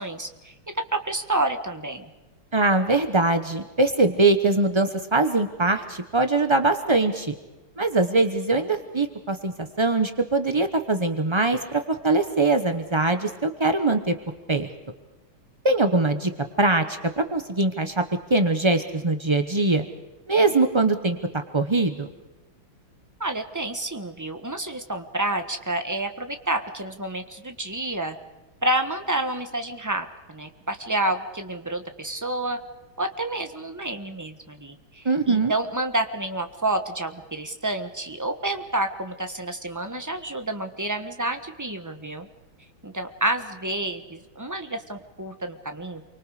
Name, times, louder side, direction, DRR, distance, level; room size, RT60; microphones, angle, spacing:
voice 1, 0.0-2.1 23.2-28.2 28.6-32.6 33.0-42.3 42.8-46.1, right 1 dB, 10° right, 6 dB, 1.0 m, -29 dB
voice 2, 2.5-7.3 7.8-14.1 14.5-14.7 15.6-16.3 16.6-18.0 18.3-19.8 20.3-22.1 35.0-35.5, right 2 dB, 45° right, 8 dB, 0.3 m, -22 dB
29.0 x 24.5 x 5.0 m, 1.1 s
omnidirectional pair, 2.4 m